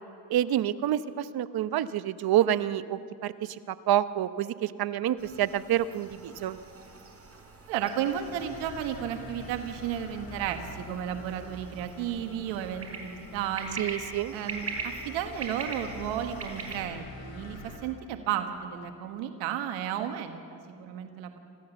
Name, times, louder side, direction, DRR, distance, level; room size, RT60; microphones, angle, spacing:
voice 1, 0.3-6.6 13.8-14.3, right 12 dB, 55° right, 14 dB, 0.9 m, -28 dB
sound 1, 5.2-16.9, right 4 dB, 30° right, 4.4 m, -42 dB
voice 2, 7.7-13.9 14.3-21.3, right 9 dB, 90° right, 7 dB, 1.4 m, -33 dB
sound 2, 7.9-17.8, left 1 dB, 70° left, 5.7 m, -46 dB
25.0 x 15.5 x 7.0 m, 2.5 s
supercardioid pair, 80°, 43 cm